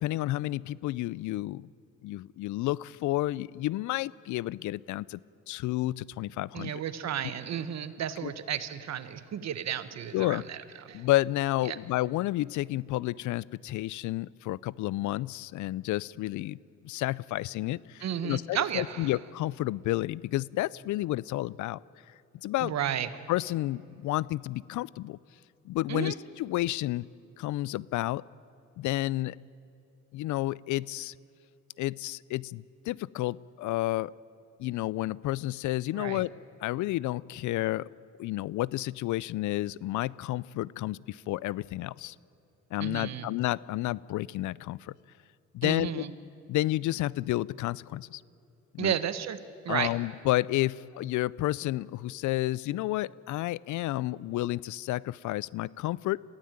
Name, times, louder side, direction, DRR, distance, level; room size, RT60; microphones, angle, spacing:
voice 1, 0.0-1.7 2.0-5.2 5.5-6.8 8.2-8.3 10.1-10.4 10.9-16.6 16.8-21.8 22.1-22.2 22.4-22.7 23.3-25.2 25.6-27.0 27.4-28.2 28.8-29.4 30.1-31.1 31.8-34.1 34.6-36.3 36.6-37.9 38.2-42.2 42.7-44.9 45.5-46.0 46.5-48.2 48.7-49.0 49.7-56.2, left 16 dB, 75° left, 23 dB, 0.5 m, -31 dB
voice 2, 6.5-10.6 10.8-11.1 11.7-11.8 18.0-19.1 22.6-23.1 25.9-26.1 36.0-36.2 42.8-43.3 45.6-46.1 48.8-49.4 49.6-49.9, right 9 dB, 60° right, 13 dB, 1.2 m, -33 dB
22.5 x 15.5 x 8.9 m, 2.6 s
cardioid pair, 90°, 30 cm